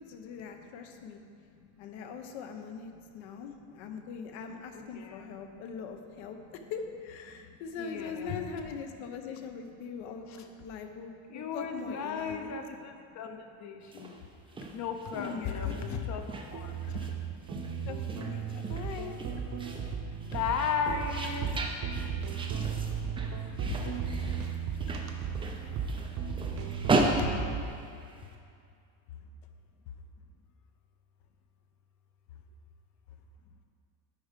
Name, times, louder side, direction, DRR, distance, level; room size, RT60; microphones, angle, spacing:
voice 1, 0.0-1.2 1.8-12.5 15.1-15.8 17.9-19.2, left 6 dB, 65° left, 5 dB, 0.9 m, -41 dB
voice 2, 1.3-1.9 3.3-4.1 4.8-5.3 5.7-5.8 6.3-6.4 7.3-8.5 10.3-10.5 11.3-14.2 14.7-17.2 20.2-21.5 23.5-24.4 27.1-27.4, left 6 dB, 35° left, 5 dB, 0.7 m, -37 dB
sound 1, 13.8-28.3, right 2 dB, 10° right, 0.4 m, -36 dB
sound 2, 16.5-27.7, right 7 dB, 40° right, 0.8 m, -35 dB
10.5 x 4.7 x 5.1 m, 2.4 s
cardioid pair, 140°, 50 cm